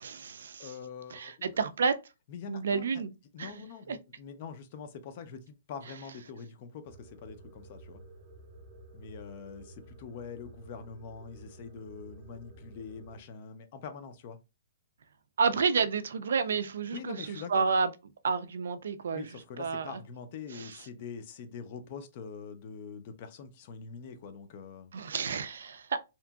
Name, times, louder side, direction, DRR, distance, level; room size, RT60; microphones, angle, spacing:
voice 1, 0.0-0.7 1.1-2.0 2.5-3.1 3.4-3.5 3.9-4.0 15.4-17.9 18.2-19.3 19.6-19.9 20.5-20.7 24.9-26.0, right 5 dB, 70° right, 0.3 m, -30 dB
voice 2, 0.6-1.5 2.3-2.9 3.3-8.0 8.9-14.4 16.9-17.7 19.1-24.9, left 6 dB, 35° left, 0.4 m, -44 dB
sound 1, 6.9-13.2, right 2 dB, 30° right, 0.8 m, -52 dB
2.8 x 2.5 x 2.3 m
hypercardioid pair, 165°, 0 cm